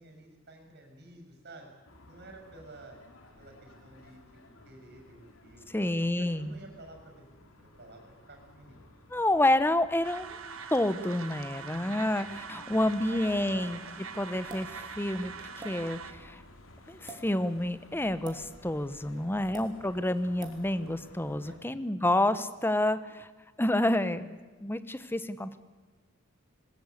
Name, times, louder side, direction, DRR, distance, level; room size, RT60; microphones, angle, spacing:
voice 1, 0.0-1.7 2.1-3.0 3.4-4.2 4.6-8.0 8.3-8.8 11.5-12.2 12.7-13.8 19.1-20.0 21.4-22.1, right 2 dB, 55° right, 3 dB, 6.6 m, -51 dB
sound 1, 1.8-21.6, left 1 dB, 70° left, 2.8 m, -55 dB
voice 2, 5.7-6.6 9.1-10.4 10.7-13.8 14.1-16.4 16.9-23.3 23.6-25.6, left 1 dB, 10° left, 13 dB, 0.9 m, -29 dB
sound 2, 10.0-16.1, right 5 dB, 75° right, 1.7 m, -43 dB
sound 3, 14.5-14.7 15.6-15.7 17.0-17.2 18.2-18.4 19.5-19.7 20.4-20.6, right 3 dB, 20° right, 3.3 m, -43 dB
20.0 x 19.5 x 8.4 m, 1.3 s
head